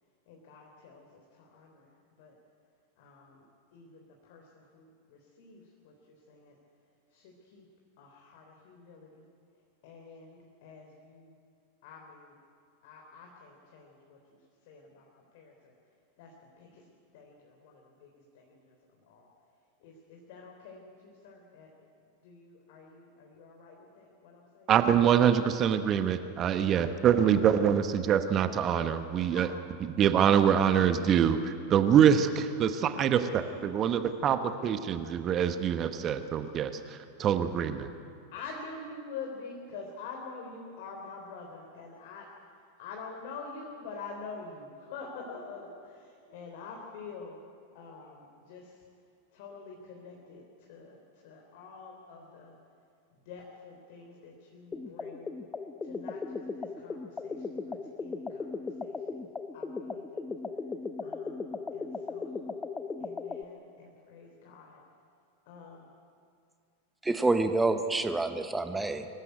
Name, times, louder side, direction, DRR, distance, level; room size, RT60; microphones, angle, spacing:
voice 1, 0.3-2.3 3.0-3.5 3.7-6.6 7.1-7.7 8.0-9.3 9.8-11.3 11.8-12.4 12.8-14.2 14.7-15.1 15.3-15.7 16.2-16.8 17.1-18.8 19.0-19.3 19.8-21.7 22.2-24.7 26.6-27.5 29.3-29.5 33.1-33.3 33.8-34.4 38.3-42.3 42.8-47.4 47.7-48.8 49.3-52.6 53.3-55.3 55.8-58.5 58.8-59.0 59.5-60.3 61.0-62.5 63.0-64.8 65.5-65.9, left 4 dB, 50° left, 0 dB, 3.5 m, -47 dB
voice 2, 24.7-29.5 29.8-37.9, right 8 dB, 30° right, 10 dB, 1.2 m, -25 dB
sound 1, 54.7-63.4, left 4 dB, 15° left, 1.0 m, -37 dB
voice 3, 67.0-69.1, right 2 dB, 10° right, 8 dB, 1.2 m, -27 dB
25.0 x 15.5 x 9.6 m, 2.4 s
figure-of-eight pair, 90°, 0 cm